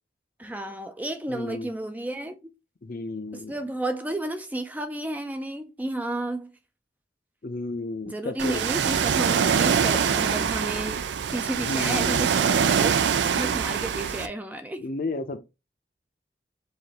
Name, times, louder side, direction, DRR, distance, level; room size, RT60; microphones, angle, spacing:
voice 1, 0.4-2.5 3.3-6.5 8.0-11.0 11.3-12.9 13.3-14.8, right 1 dB, 10° right, 0.4 m, -32 dB
voice 2, 1.3-1.7 2.8-3.5 7.4-8.6 11.6-12.4 14.8-15.4, left 2 dB, 55° left, 0.6 m, -33 dB
Ocean, 8.4-14.3, right 7 dB, 85° right, 0.4 m, -24 dB
4.8 x 2.5 x 2.8 m
head